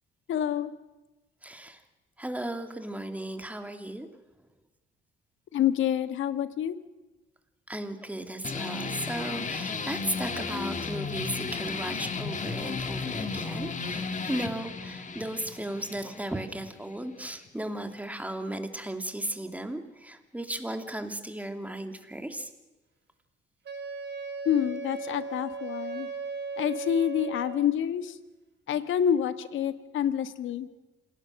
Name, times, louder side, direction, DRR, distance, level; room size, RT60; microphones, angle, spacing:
voice 1, 0.3-0.7 5.5-6.8 24.4-26.1 26.6-28.2 28.7-30.7, left 9 dB, 75° left, 12 dB, 1.5 m, -27 dB
voice 2, 1.4-1.8 2.2-4.1 7.7-22.5, right 1 dB, 5° right, 6 dB, 2.7 m, -35 dB
sound 1, 8.4-17.5, left 4 dB, 40° left, 2.0 m, -34 dB
Wind instrument woodwind instrument, 23.6-27.8, right 4 dB, 60° right, 4.8 m, -37 dB
27.5 x 19.0 x 6.5 m, 1.1 s
cardioid pair, 90°, 20 cm